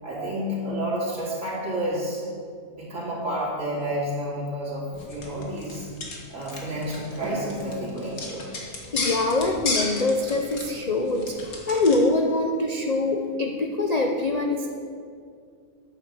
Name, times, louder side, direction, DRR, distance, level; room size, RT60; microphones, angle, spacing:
voice 1, 0.0-2.2 2.7-5.9 6.3-8.4, right 1 dB, 55° right, -6 dB, 3.3 m, -30 dB
sound 1, 4.9-12.0, left 3 dB, 70° left, 2.0 m, -34 dB
voice 2, 8.6-11.4 11.7-14.7, left 2 dB, 45° left, 2 dB, 0.5 m, -24 dB
9.0 x 8.5 x 6.6 m, 2.2 s
omnidirectional pair, 1.6 m